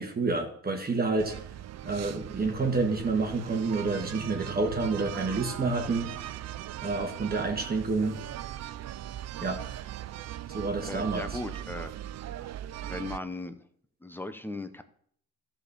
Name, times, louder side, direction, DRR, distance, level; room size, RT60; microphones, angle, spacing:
voice 1, 0.0-1.4 1.8-6.1 6.8-8.2 9.4-9.6 10.5-11.4, right 3 dB, 30° right, 3 dB, 1.6 m, -29 dB
sound 1, 1.2-13.2, right 12 dB, 60° right, 0.5 m, -39 dB
voice 2, 10.8-11.9 12.9-13.6 14.0-14.8, left 2 dB, 5° left, 9 dB, 0.9 m, -37 dB
13.0 x 4.4 x 6.9 m, 0.64 s
cardioid pair, 90°, 30 cm